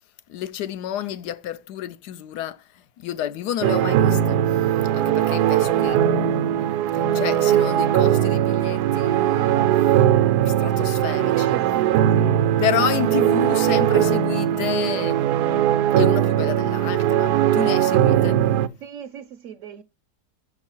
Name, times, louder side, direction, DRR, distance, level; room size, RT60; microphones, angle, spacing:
voice 1, 0.3-4.6 4.9-6.0 6.3-6.6 6.9-9.6 10.4-11.6 12.6-15.2 16.0-18.5, left 11 dB, 80° left, 1.2 m, -30 dB
sound 1, 3.6-18.7, right 11 dB, 85° right, 1.1 m, -20 dB
voice 2, 11.3-12.4 18.8-19.8, right 11 dB, 65° right, 0.8 m, -36 dB
6.2 x 5.6 x 4.3 m
omnidirectional pair, 1.7 m